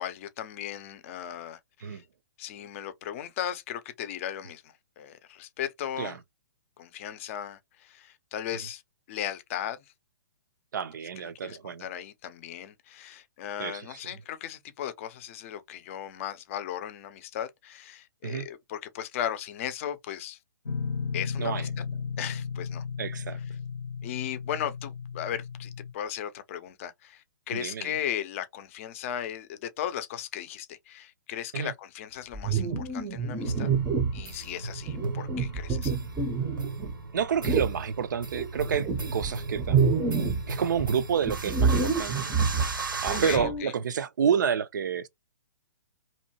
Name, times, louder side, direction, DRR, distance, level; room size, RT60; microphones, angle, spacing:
voice 1, 0.0-2.0 2.4-6.2 6.8-8.8 9.1-9.8 11.2-20.4 21.1-21.8 22.2-22.8 24.0-33.7 34.1-36.0 43.1-43.7, left 10 dB, 40° left, 0.5 m, -36 dB
voice 2, 10.7-11.9 13.6-14.0 18.2-18.5 21.4-21.7 23.0-23.4 27.5-27.9 31.5-31.7 37.1-39.8 40.5-42.3 43.0-45.1, right 7 dB, 65° right, 0.4 m, -29 dB
Guitar, 20.7-25.9, left 6 dB, 80° left, 0.6 m, -34 dB
sound 1, 32.3-34.3 34.9-36.9 37.4-37.8 38.3-40.5 40.8-43.6, right 5 dB, 15° right, 0.5 m, -27 dB
sound 2, 33.4-43.4, right 3 dB, 85° right, 0.8 m, -36 dB
2.7 x 2.2 x 2.7 m
figure-of-eight pair, 125°, 11 cm